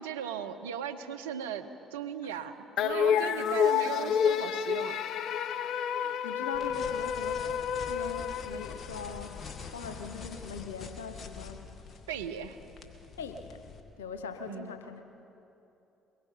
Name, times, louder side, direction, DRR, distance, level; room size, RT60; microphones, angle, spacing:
voice 1, 0.0-5.0 12.1-12.6 14.4-14.7, right 8 dB, 85° right, 8 dB, 0.9 m, -37 dB
sound 1, 2.8-9.3, left 8 dB, 65° left, 0.6 m, -29 dB
voice 2, 5.9-9.4 9.7-11.7 13.2-13.6 14.0-15.0, left 5 dB, 90° left, 7 dB, 0.9 m, -41 dB
sound 2, 6.5-13.8, left 5 dB, 45° left, 2.2 m, -45 dB
23.0 x 21.5 x 5.9 m, 2.9 s
hypercardioid pair, 55°, 0 cm